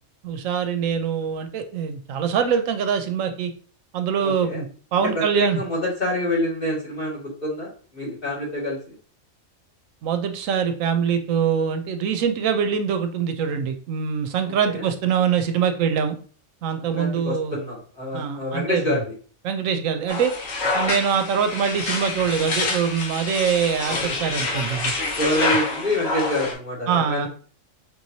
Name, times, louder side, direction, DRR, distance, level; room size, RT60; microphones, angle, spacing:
voice 1, 0.2-3.5 3.9-4.7 4.9-5.6 10.0-16.2 16.6-17.6 18.1-19.0 19.4-20.3 20.7-24.9 26.9-27.3, right 7 dB, 80° right, 8 dB, 1.0 m, -23 dB
voice 2, 4.2-4.6 5.1-9.0 14.5-14.9 16.9-19.1 25.2-27.3, left 1 dB, 40° left, -5 dB, 2.2 m, -26 dB
sound 1, 20.1-26.5, left 3 dB, 85° left, 1.3 m, -27 dB
5.1 x 3.1 x 2.7 m, 0.42 s
omnidirectional pair, 1.3 m